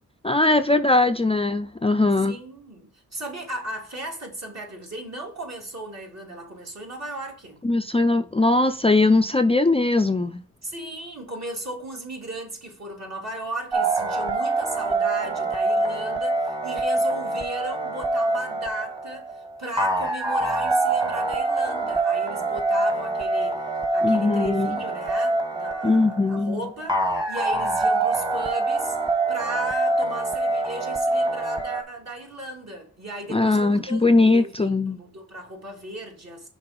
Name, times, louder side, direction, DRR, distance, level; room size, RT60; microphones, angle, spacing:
voice 1, 0.2-2.4 7.6-10.4 24.0-24.8 25.8-26.7 33.3-35.0, left 2 dB, 15° left, 0.4 m, -20 dB
voice 2, 2.3-7.6 10.6-29.0 29.3-34.0 34.3-36.5, right 1 dB, 50° right, 2.8 m, -36 dB
sound 1, 13.7-31.8, right 2 dB, 10° right, 1.2 m, -25 dB
5.9 x 4.1 x 5.1 m
cardioid pair, 45°, 34 cm